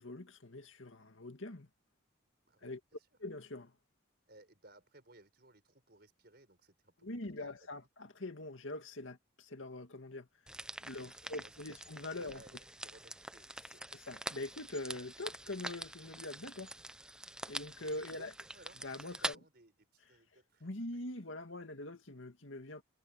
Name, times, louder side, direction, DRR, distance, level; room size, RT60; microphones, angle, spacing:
voice 1, 0.0-1.7 2.6-2.8 3.2-3.7 7.0-10.3 10.5-12.4 13.9-16.7 17.5-18.3 18.8-19.4 20.6-22.8, left 2 dB, 75° left, 2.1 m, -44 dB
voice 2, 4.3-6.9 7.4-7.7 10.9-11.8 12.2-13.9 18.2-20.7 21.3-21.7, right 2 dB, 50° right, 6.0 m, -61 dB
sound 1, 10.5-19.3, right 1 dB, 5° right, 0.5 m, -45 dB
head